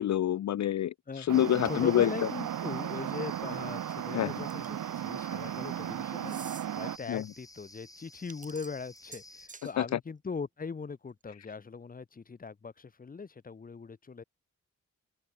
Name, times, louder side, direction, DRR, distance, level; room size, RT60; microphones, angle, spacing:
voice 1, 0.0-2.3 4.1-4.4 7.1-7.3 9.8-10.0, left 11 dB, 60° left, 0.5 m, -27 dB
sound 1, 1.3-9.5, left 1 dB, 10° left, 5.6 m, -53 dB
sound 2, 1.3-7.0, right 11 dB, 75° right, 0.8 m, -36 dB
voice 2, 1.6-14.2, left 5 dB, 25° left, 1.1 m, -40 dB
sound 3, 4.5-4.9 6.2-6.7 8.1-9.7, right 4 dB, 25° right, 0.8 m, -48 dB
open air
wide cardioid pair, 180°, 31 cm